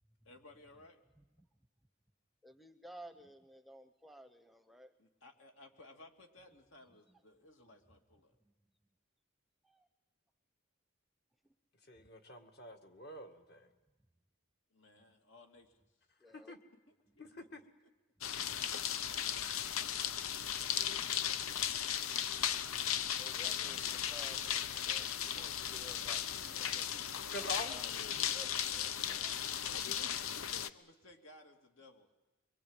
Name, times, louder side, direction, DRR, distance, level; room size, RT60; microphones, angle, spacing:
voice 1, 0.3-1.0 5.0-8.3 14.7-15.8 16.7-17.3 17.6-17.9 29.7-30.0 30.3-32.1, left 2 dB, 70° left, 3 dB, 2.7 m, -60 dB
voice 2, 2.4-4.9 16.2-16.5 23.2-23.8 24.1-27.9 28.3-29.3, equal, ahead, 8 dB, 0.8 m, -55 dB
voice 3, 11.9-13.7 16.3-16.6 17.2-17.6 27.3-27.7, left 2 dB, 50° left, 5 dB, 2.1 m, -45 dB
sound 1, 18.2-30.7, left 9 dB, 90° left, 0.8 m, -36 dB
24.5 x 23.5 x 9.0 m, 1.1 s
head